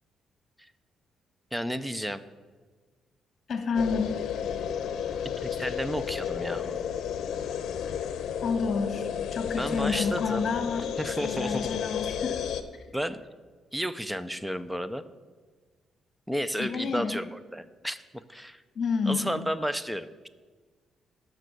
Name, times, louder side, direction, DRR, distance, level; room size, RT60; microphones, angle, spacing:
voice 1, 1.5-2.2 5.4-6.8 9.5-10.5 11.0-11.7 12.9-13.2 13.7-15.0 16.3-18.0 18.3-18.6 19.1-20.3, equal, 5° right, 13 dB, 0.5 m, -32 dB
voice 2, 3.5-4.1 8.4-10.9 11.2-12.4 16.6-17.2 18.7-19.4, left 5 dB, 45° left, 7 dB, 1.5 m, -29 dB
sound 1, 3.7-12.6, left 8 dB, 75° left, 0.7 m, -32 dB
12.0 x 6.2 x 6.7 m, 1.4 s
cardioid pair, 130°, 0 cm